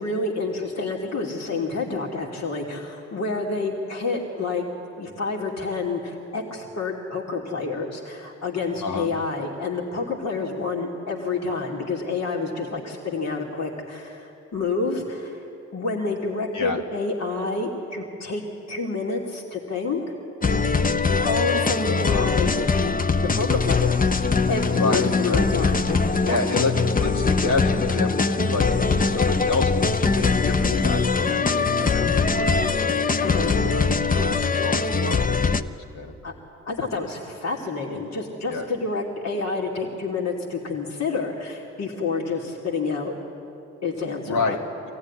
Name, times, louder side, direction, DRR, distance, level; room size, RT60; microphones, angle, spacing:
voice 1, 0.0-4.7 4.9-15.4 15.7-20.0 21.2-23.0 23.2-24.1 24.5-26.4 33.2-33.5 36.2-36.3 36.6-43.2 43.8-44.6, left 3 dB, 55° left, -1 dB, 2.7 m, -28 dB
sound 1, 20.4-35.6, left 4 dB, 25° left, 0.8 m, -22 dB
voice 2, 24.7-25.4 26.2-29.7 30.0-36.1 38.5-38.7 44.2-44.6, left 3 dB, 80° left, 1 dB, 2.3 m, -29 dB
24.0 x 15.5 x 9.9 m, 2.8 s
supercardioid pair, 50°, 31 cm